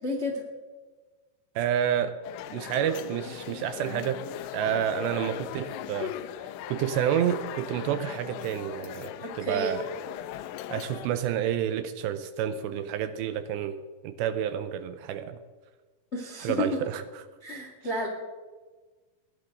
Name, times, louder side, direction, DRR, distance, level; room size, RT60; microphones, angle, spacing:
voice 1, 0.0-0.4 9.4-9.8 16.1-16.8 17.4-18.1, left 1 dB, 45° left, 1 dB, 0.8 m, -31 dB
voice 2, 1.6-2.2 2.5-4.3 4.5-6.2 6.7-9.9 10.7-15.4 16.4-17.0, right 9 dB, 80° right, 10 dB, 2.7 m, -29 dB
sound 1, 2.2-11.1, left 12 dB, 85° left, 3.2 m, -39 dB
21.5 x 17.0 x 3.9 m, 1.4 s
omnidirectional pair, 5.5 m